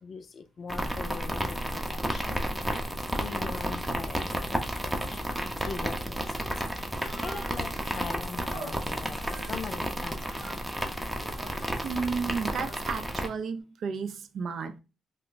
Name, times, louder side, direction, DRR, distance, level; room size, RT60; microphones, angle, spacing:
voice 1, 0.0-2.4 3.2-5.2 5.7-6.3 7.2-10.5, left 5 dB, 50° left, 0.4 m, -41 dB
sound 1, 0.7-13.3, equal, 5° right, 0.5 m, -32 dB
Human voice, 6.9-8.1 8.5-10.8 11.2-11.8 12.4-13.1, right 3 dB, 90° right, 1.0 m, -47 dB
voice 2, 11.8-14.8, right 5 dB, 65° right, 0.4 m, -32 dB
2.4 x 2.1 x 3.8 m
cardioid pair, 90°, 0 cm